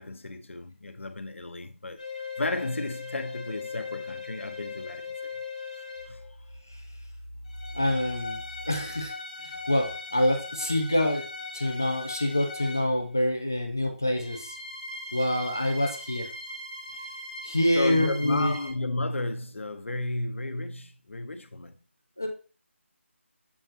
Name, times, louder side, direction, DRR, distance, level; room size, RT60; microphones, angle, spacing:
voice 1, 0.0-2.0 2.4-5.2 5.7-6.2 17.7-21.8, left 2 dB, 70° left, 0.9 m, -33 dB
sound 1, 2.0-6.3 7.5-13.0 14.2-18.7, left 3 dB, 30° left, 1.2 m, -39 dB
voice 2, 7.7-8.4 8.7-11.3 11.5-14.6 15.1-16.3 17.4-18.6 22.2-22.3, left 1 dB, 15° left, 0.3 m, -26 dB
7.2 x 5.5 x 2.8 m
figure-of-eight pair, 180°, 7 cm